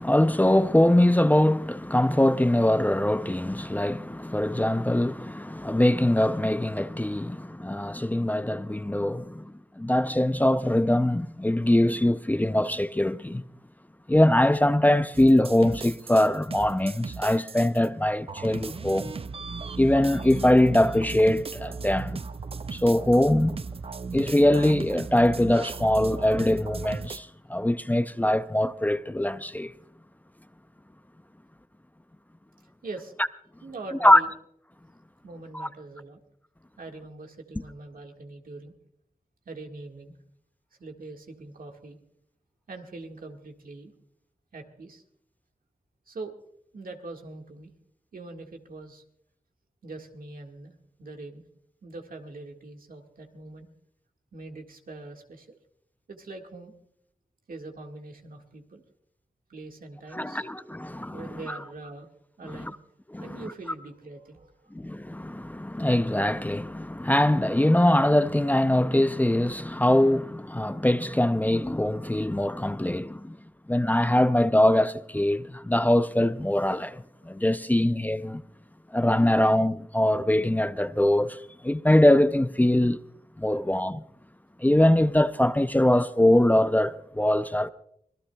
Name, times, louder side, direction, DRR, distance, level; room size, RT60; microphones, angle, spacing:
voice 1, 0.0-13.4 14.1-19.1 19.8-22.2 22.7-23.6 24.1-29.7 34.0-34.2 35.5-35.7 60.1-61.5 62.5-62.7 63.1-63.4 64.7-73.4 73.7-78.4 78.9-83.0 83.4-84.0 84.6-87.7, left 1 dB, 10° left, 0.5 m, -22 dB
sound 1, 15.1-17.9 18.3-27.2, right 4 dB, 40° right, 0.5 m, -37 dB
voice 2, 32.8-33.1 33.6-34.3 35.2-36.2 36.8-38.7 39.5-40.1 40.8-42.0 42.7-43.9 44.5-45.0 46.1-46.3 46.7-47.7 48.1-49.0 49.8-51.4 51.8-53.7 54.3-55.6 56.1-56.7 57.5-58.8 59.5-60.5 61.1-62.1 62.4-62.8 63.2-64.7 77.2-77.3 79.3-79.4 83.5-83.6, right 3 dB, 85° right, 1.7 m, -42 dB
25.0 x 18.5 x 2.3 m
wide cardioid pair, 100°, 14 cm